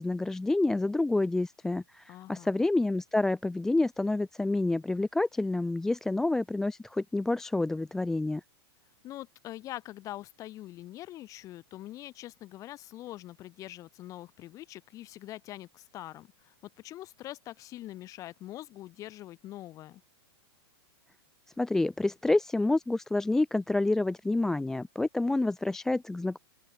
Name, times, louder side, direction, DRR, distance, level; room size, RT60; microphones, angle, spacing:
voice 1, 0.0-8.4 21.6-26.4, left 2 dB, 5° left, 0.5 m, -28 dB
voice 2, 2.1-2.5 9.0-20.0, left 14 dB, 25° left, 6.3 m, -44 dB
open air
supercardioid pair, 165°, 14 cm